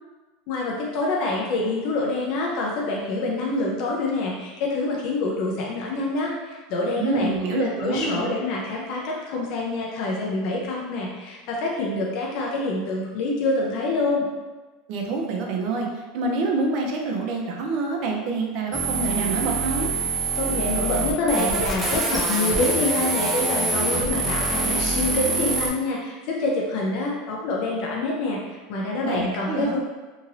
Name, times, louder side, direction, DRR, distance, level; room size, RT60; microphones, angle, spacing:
voice 1, 0.5-14.3 20.4-29.8, left 2 dB, 55° left, -2 dB, 0.5 m, -26 dB
voice 2, 7.0-8.3 14.9-19.9 29.0-29.8, right 3 dB, 50° right, 1 dB, 0.6 m, -27 dB
sound 1, 18.7-25.7, right 3 dB, 5° right, 0.5 m, -25 dB
2.9 x 2.7 x 2.6 m, 1.2 s
supercardioid pair, 145°, 0 cm